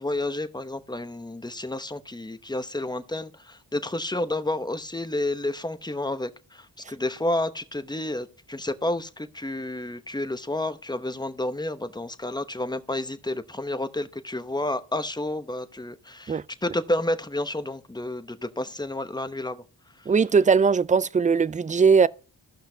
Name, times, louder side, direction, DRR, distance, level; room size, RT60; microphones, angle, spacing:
voice 1, 0.0-19.6, left 1 dB, 10° left, 0.8 m, -30 dB
voice 2, 20.1-22.1, right 5 dB, 20° right, 0.3 m, -19 dB
15.0 x 5.7 x 2.7 m
cardioid pair, 40°, 45 cm